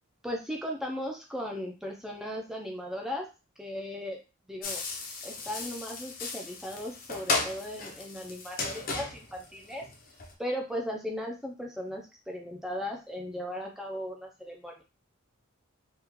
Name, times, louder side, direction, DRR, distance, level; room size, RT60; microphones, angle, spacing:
voice 1, 0.2-3.3 3.6-4.2 4.5-4.8 5.2-9.9 10.4-14.8, equal, ahead, 0 dB, 0.4 m, -37 dB
sound 1, 4.6-10.3, left 3 dB, 40° left, 0.6 m, -35 dB
3.6 x 2.3 x 3.0 m, 0.30 s
head